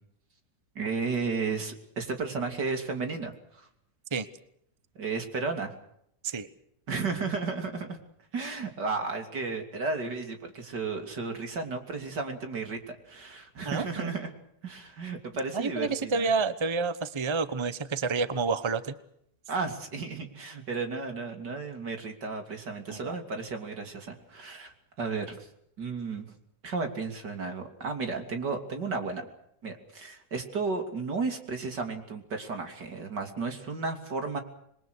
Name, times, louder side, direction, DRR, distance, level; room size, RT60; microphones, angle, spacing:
voice 1, 0.8-3.7 5.0-5.7 6.9-8.0 8.3-14.3 14.6-16.3 19.5-25.5 25.8-26.3 26.6-29.3 29.6-34.4, right 4 dB, 85° right, 5 dB, 3.7 m, -33 dB
voice 2, 13.6-14.1 15.5-18.9 22.9-23.2, right 4 dB, 20° right, 12 dB, 1.0 m, -29 dB
27.5 x 22.0 x 6.4 m, 0.72 s
omnidirectional pair, 1.8 m